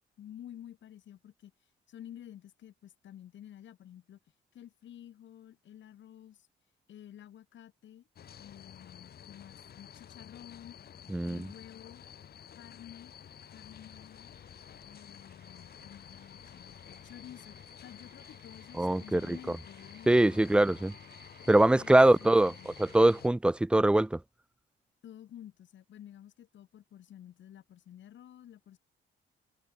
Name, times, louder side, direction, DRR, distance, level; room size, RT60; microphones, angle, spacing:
voice 1, 0.2-1.5 1.9-4.2 4.5-6.5 6.9-8.1 8.4-10.8 11.2-12.0 12.6-13.2 13.5-14.3 14.9-20.4 21.5-22.8 25.0-28.8, left 11 dB, 70° left, 4.0 m, -51 dB
sound 1, 8.2-23.3, left 9 dB, 50° left, 1.2 m, -51 dB
voice 2, 11.1-11.5 18.8-19.4 20.1-20.9 21.5-22.5 22.8-24.2, right 1 dB, 5° right, 0.5 m, -23 dB
sound 2, 13.1-23.2, right 9 dB, 60° right, 2.9 m, -61 dB
cardioid pair, 90°, 20 cm